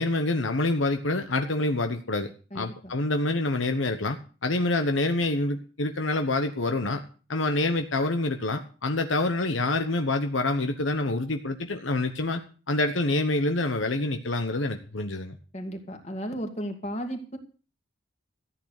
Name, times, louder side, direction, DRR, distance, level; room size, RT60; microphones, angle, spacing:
voice 1, 0.0-7.0 7.3-12.4 12.7-15.4, left 2 dB, 75° left, 7 dB, 1.1 m, -27 dB
voice 2, 2.5-2.9 15.5-17.4, equal, 35° left, 4 dB, 2.4 m, -34 dB
14.0 x 8.9 x 6.6 m, 0.38 s
head